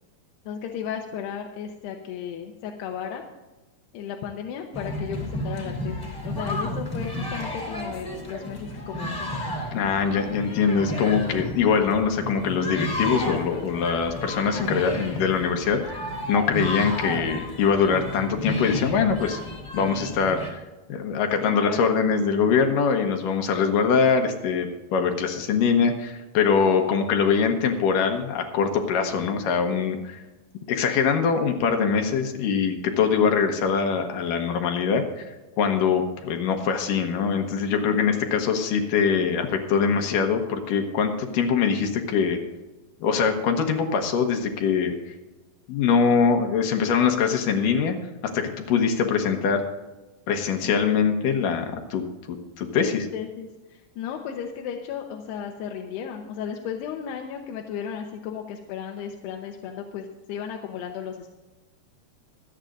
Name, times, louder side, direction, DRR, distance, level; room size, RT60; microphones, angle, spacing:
voice 1, 0.5-3.2 3.9-9.3 21.4-21.9 37.8-38.3 50.6-51.0 52.9-61.3, left 8 dB, 90° left, 2 dB, 3.0 m, -35 dB
sound 1, 4.7-20.5, left 1 dB, 25° left, 2.0 m, -32 dB
voice 2, 9.7-16.0 16.3-19.4 19.7-20.6 20.9-30.2 30.7-35.3 35.6-42.4 43.0-45.1 45.7-48.0 48.3-49.6 50.3-52.0 52.3-53.1, left 6 dB, 65° left, 4 dB, 2.5 m, -23 dB
25.5 x 9.0 x 2.6 m, 1.1 s
omnidirectional pair, 4.6 m